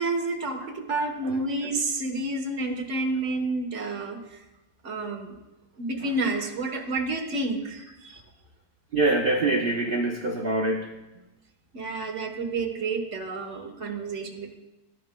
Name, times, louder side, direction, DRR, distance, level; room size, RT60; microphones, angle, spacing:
voice 1, 0.0-4.4 4.8-5.3 5.8-8.2 11.7-14.6, right 2 dB, 45° right, 3 dB, 1.3 m, -30 dB
voice 2, 8.9-10.9, right 2 dB, 85° right, 2 dB, 0.4 m, -25 dB
13.0 x 12.5 x 2.2 m, 1.0 s
omnidirectional pair, 2.0 m